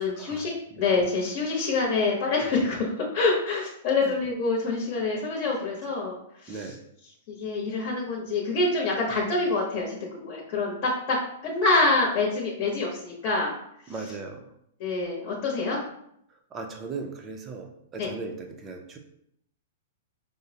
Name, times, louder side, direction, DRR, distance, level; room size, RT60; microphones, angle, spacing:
voice 1, 0.0-6.2 6.4-6.6 7.3-11.2 11.4-13.5 14.8-15.8 18.0-18.1, left 3 dB, 40° left, -2 dB, 0.9 m, -26 dB
voice 2, 6.5-6.8 13.9-14.4 16.5-19.0, right 4 dB, 20° right, 2 dB, 0.5 m, -38 dB
4.9 x 2.0 x 2.8 m, 0.72 s
hypercardioid pair, 150°, 0 cm